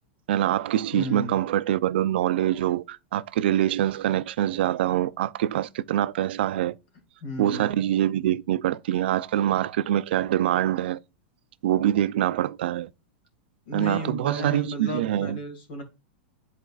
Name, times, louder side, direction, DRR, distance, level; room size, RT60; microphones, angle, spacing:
voice 1, 0.3-6.8 7.4-11.0 11.6-12.9 13.7-15.4, right 12 dB, 65° right, 0.4 m, -24 dB
voice 2, 0.9-1.4 7.2-7.7 13.7-15.8, left 1 dB, 55° left, 2.2 m, -33 dB
11.0 x 4.0 x 2.3 m
supercardioid pair, 165°, 6 cm